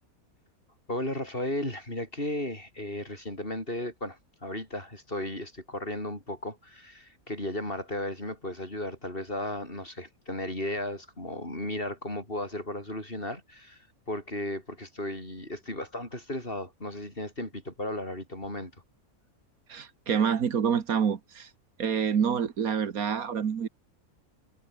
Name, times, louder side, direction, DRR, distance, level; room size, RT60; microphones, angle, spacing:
voice 1, 0.9-18.7, left 1 dB, 35° left, 7.8 m, -35 dB
voice 2, 19.7-21.5 21.8-23.7, right 7 dB, 75° right, 1.8 m, -27 dB
omnidirectional pair, 1.5 m